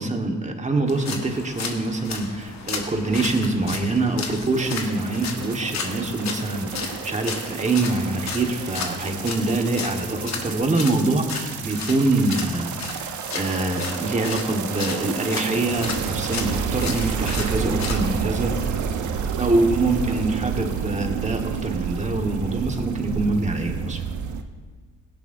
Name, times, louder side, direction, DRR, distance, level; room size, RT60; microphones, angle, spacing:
voice 1, 0.0-18.5 19.4-24.0, right 2 dB, 25° right, 4 dB, 1.4 m, -25 dB
sound 1, 0.9-18.1, left 5 dB, 65° left, 1.6 m, -34 dB
sound 2, 4.5-24.4, right 7 dB, 70° right, 0.9 m, -30 dB
16.5 x 12.0 x 2.7 m, 1.4 s
cardioid pair, 90°, 30 cm